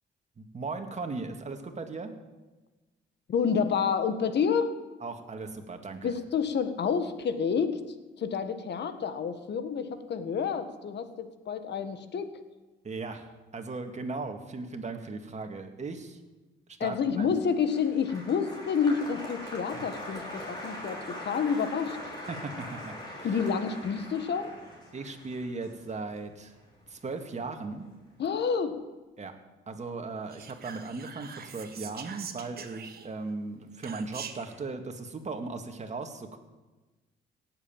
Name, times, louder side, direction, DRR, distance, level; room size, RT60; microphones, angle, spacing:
voice 1, 0.4-2.1 5.0-6.1 12.8-16.2 16.8-17.3 22.3-23.3 24.9-26.5 26.9-27.9 29.2-29.3 29.7-36.4, right 3 dB, 35° right, 5 dB, 2.1 m, -37 dB
voice 2, 3.3-4.8 6.0-7.8 8.2-12.3 16.8-22.0 23.2-24.5 28.2-28.8, left 6 dB, 60° left, 10 dB, 1.6 m, -29 dB
Applause, 17.1-27.5 27.7-28.4, equal, 20° left, 5.8 m, -42 dB
Whispering, 30.3-33.3 33.8-34.6, right 7 dB, 50° right, 1.6 m, -43 dB
17.0 x 7.9 x 9.0 m, 1.2 s
cardioid pair, 90°, 20 cm